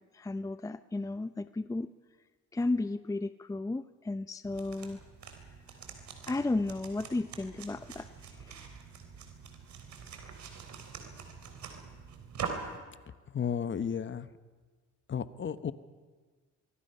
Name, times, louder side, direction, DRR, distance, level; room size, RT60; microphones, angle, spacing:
voice 1, 0.1-1.9 2.5-5.0 6.3-8.1 8.3-8.6, left 2 dB, 10° left, 12 dB, 0.6 m, -33 dB
sound 1, 4.4-12.8, right 6 dB, 65° right, 3.5 m, -44 dB
voice 2, 13.3-14.3 15.1-15.7, left 7 dB, 40° left, 13 dB, 1.0 m, -33 dB
24.0 x 23.0 x 5.6 m, 1.4 s
cardioid pair, 90°, 30 cm